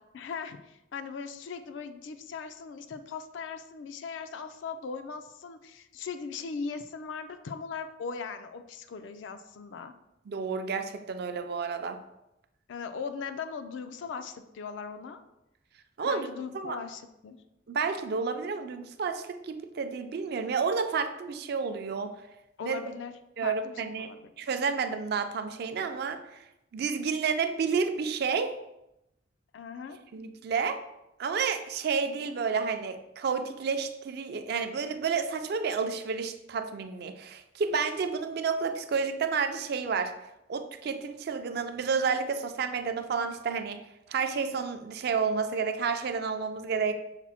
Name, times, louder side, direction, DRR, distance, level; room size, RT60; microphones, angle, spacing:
voice 1, 0.1-9.9 12.7-15.2 16.0-17.4 22.6-23.1 23.4-24.5 29.5-30.0, left 5 dB, 80° left, 9 dB, 0.4 m, -39 dB
voice 2, 10.3-12.0 16.0-16.3 16.5-16.8 17.7-22.1 22.6-22.8 23.4-24.1 24.4-26.2 26.7-28.6 30.1-30.8 31.2-40.1 40.5-43.8 44.1-46.9, right 5 dB, 60° right, 8 dB, 0.4 m, -30 dB
5.9 x 2.0 x 4.2 m, 0.88 s
head